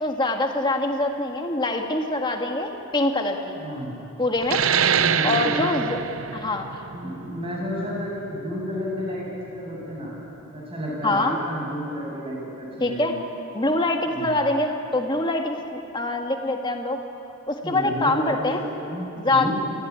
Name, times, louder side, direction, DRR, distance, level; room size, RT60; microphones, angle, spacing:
voice 1, 0.0-3.6 4.2-4.6 5.2-6.0 6.3-6.7 11.0-11.4 12.8-13.1 13.5-17.0 17.5-18.6 19.2-19.5, left 2 dB, 20° left, 3 dB, 1.8 m, -24 dB
voice 2, 3.6-4.0 4.8-5.6 6.9-10.1 10.5-13.2 14.1-14.3 17.6-19.5, equal, 25° right, -3 dB, 7.3 m, -31 dB
sound 1, 4.4-9.6, right 7 dB, 85° right, 0.7 m, -25 dB
27.0 x 15.5 x 9.7 m, 3.0 s
head